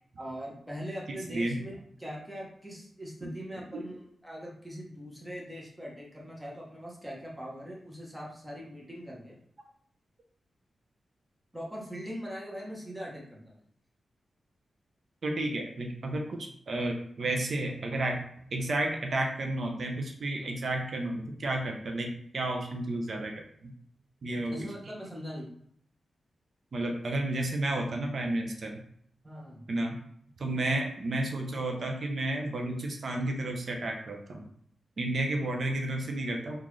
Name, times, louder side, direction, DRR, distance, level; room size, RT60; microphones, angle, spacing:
voice 1, 0.2-1.7 2.0-9.4 11.5-13.6 23.3-23.4 24.3-25.5 29.2-29.7, equal, 10° right, -3 dB, 1.0 m, -41 dB
voice 2, 15.2-18.2 18.5-23.7 24.2-24.7 26.7-28.8 29.7-30.0 30.4-34.5 35.0-36.6, right 2 dB, 60° right, 3 dB, 0.6 m, -32 dB
3.8 x 2.4 x 3.1 m, 0.66 s
wide cardioid pair, 95°, 0 cm